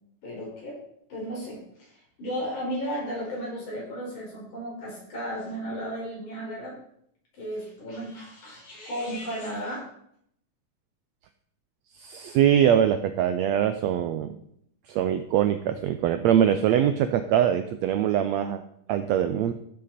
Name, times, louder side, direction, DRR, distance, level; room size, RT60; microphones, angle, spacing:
voice 1, 0.2-0.8 1.1-6.7 7.3-9.9, equal, 65° left, -3 dB, 6.3 m, -34 dB
voice 2, 12.0-14.4 14.9-18.6 18.9-19.5, right 10 dB, 90° right, 9 dB, 1.5 m, -23 dB
15.0 x 7.6 x 4.2 m, 0.70 s
omnidirectional pair, 3.7 m